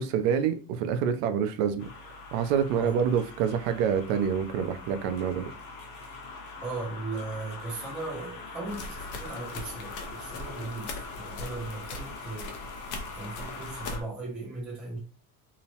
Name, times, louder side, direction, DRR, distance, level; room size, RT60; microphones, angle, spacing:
voice 1, 0.0-1.9 2.3-5.4, right 7 dB, 75° right, 0.6 m, -27 dB
sound 1, 1.8-14.0, left 3 dB, 55° left, 0.8 m, -43 dB
voice 2, 6.6-12.5 13.1-15.0, right 3 dB, 5° right, 0.3 m, -37 dB
sound 2, 8.7-14.0, left 2 dB, 85° left, 0.7 m, -40 dB
2.9 x 2.0 x 2.7 m
cardioid pair, 180°, 41 cm